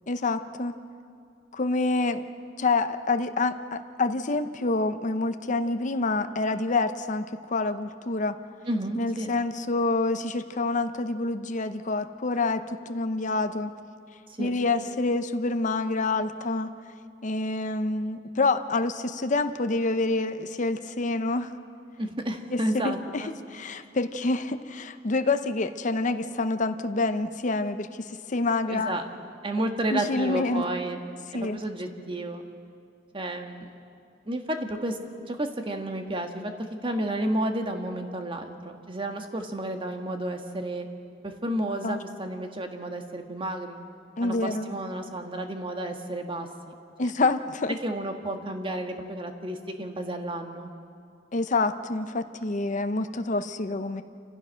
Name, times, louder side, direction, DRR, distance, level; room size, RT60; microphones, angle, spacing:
voice 1, 0.1-0.7 1.5-2.2 2.6-8.4 9.0-13.7 14.4-16.7 17.2-21.5 22.5-29.0 29.9-30.7 31.3-31.6 41.8-42.0 44.2-44.7 47.0-47.8 51.3-54.0, left 3 dB, 45° left, 9 dB, 0.7 m, -27 dB
voice 2, 8.7-9.3 14.4-14.5 22.0-23.3 28.7-29.0 29.4-31.0 31.4-32.4 33.1-33.7 34.2-35.0 35.3-36.5 36.8-40.9 41.2-43.8 44.2-46.5 47.0-47.1 47.8-50.7, right 1 dB, 30° right, 5 dB, 1.5 m, -31 dB
28.5 x 15.0 x 6.4 m, 2.4 s
head